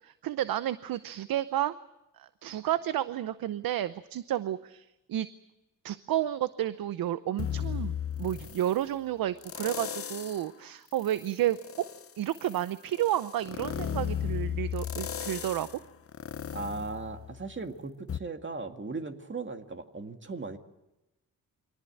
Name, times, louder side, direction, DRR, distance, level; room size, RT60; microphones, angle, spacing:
voice 1, 0.0-1.7 2.2-5.3 5.8-11.9 12.2-15.7, right 12 dB, 80° right, 14 dB, 0.8 m, -31 dB
sound 1, 7.4-8.8 9.4-10.5 10.9-17.6 18.1-18.2, left 9 dB, 40° left, 0.8 m, -36 dB
voice 2, 16.5-20.6, right 3 dB, 35° right, 6 dB, 2.1 m, -37 dB
24.0 x 18.0 x 8.9 m, 0.98 s
cardioid pair, 75°, 35 cm